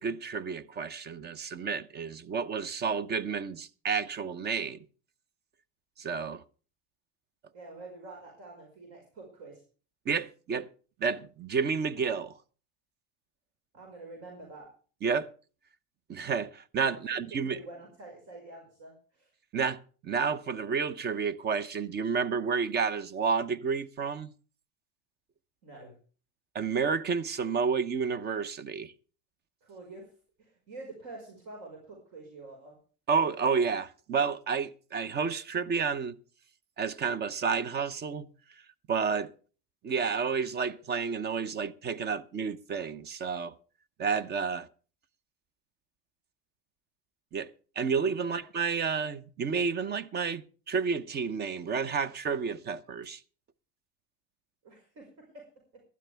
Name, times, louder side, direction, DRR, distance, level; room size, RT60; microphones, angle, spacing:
voice 1, 0.0-4.8 6.0-6.4 10.1-10.7 11.0-12.3 15.0-15.3 16.1-17.6 19.5-24.3 26.5-28.9 33.1-36.1 36.8-38.3 38.9-39.3 39.8-43.5 44.0-44.7 47.3-47.5 47.8-53.2, right 5 dB, 30° right, 0.7 m, -30 dB
voice 2, 7.5-9.6 13.7-14.7 16.8-19.3 25.6-26.0 29.6-30.1 30.4-32.8 48.2-48.4 54.6-55.5 55.7-55.8, right 2 dB, 55° right, 5.1 m, -47 dB
18.5 x 12.5 x 3.4 m
cardioid pair, 145°, 34 cm